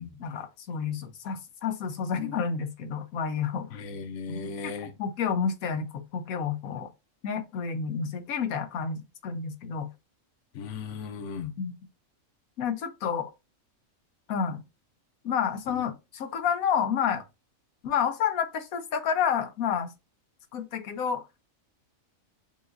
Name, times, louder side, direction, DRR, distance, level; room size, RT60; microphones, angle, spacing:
voice 1, 0.2-3.7 4.3-4.7 5.0-6.9 7.2-9.9 11.6-11.8 12.6-13.3 14.3-14.6 15.2-17.2 17.8-19.9 20.5-21.2, left 7 dB, 90° left, 1.2 m, -30 dB
voice 2, 3.7-4.9 10.5-11.5 15.7-15.8, left 5 dB, 65° left, 1.0 m, -37 dB
6.9 x 2.5 x 2.5 m
omnidirectional pair, 1.4 m